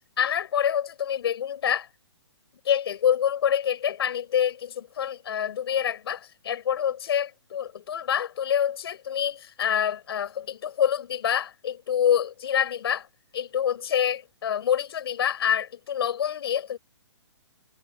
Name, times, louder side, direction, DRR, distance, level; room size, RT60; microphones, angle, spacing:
voice 1, 0.2-1.9 2.6-13.1 13.3-16.8, left 9 dB, 55° left, 6.5 m, -26 dB
hypercardioid pair, 155°, 15 cm